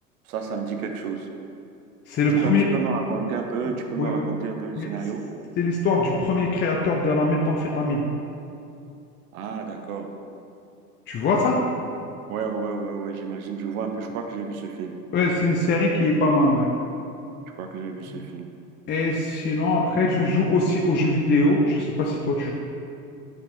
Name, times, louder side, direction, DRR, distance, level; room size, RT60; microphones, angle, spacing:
voice 1, 0.3-1.3 2.3-5.3 9.3-10.1 12.3-14.9 17.6-18.5 19.9-20.1, right 5 dB, 60° right, 4 dB, 1.1 m, -31 dB
voice 2, 2.1-2.6 4.0-4.2 4.8-4.9 5.6-8.0 11.1-11.6 15.1-16.7 18.1-18.2 18.9-22.5, left 2 dB, 20° left, -1 dB, 0.7 m, -22 dB
9.6 x 5.4 x 4.3 m, 2.6 s
figure-of-eight pair, 90°, 48 cm